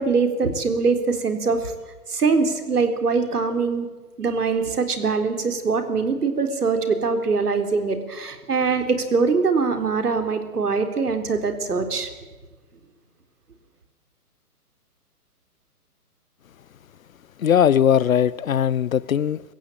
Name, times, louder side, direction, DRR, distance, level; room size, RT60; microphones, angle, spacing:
voice 1, 0.0-1.7 2.1-3.9 4.2-12.1, right 4 dB, 75° right, 3.9 m, -23 dB
voice 2, 17.4-19.4, left 9 dB, 60° left, 0.9 m, -19 dB
26.5 x 15.5 x 8.7 m
figure-of-eight pair, 135°, 47 cm